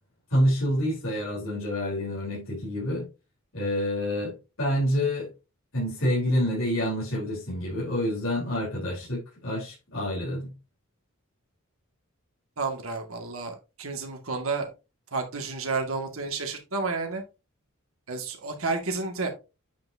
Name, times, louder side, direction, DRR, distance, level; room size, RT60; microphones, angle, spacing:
voice 1, 0.3-3.0 3.5-5.3 5.7-10.5, equal, 70° left, 3.9 m, -27 dB
voice 2, 12.6-14.7 15.1-17.2 18.1-19.3, right 4 dB, 75° right, 2.0 m, -31 dB
8.7 x 5.9 x 2.8 m
head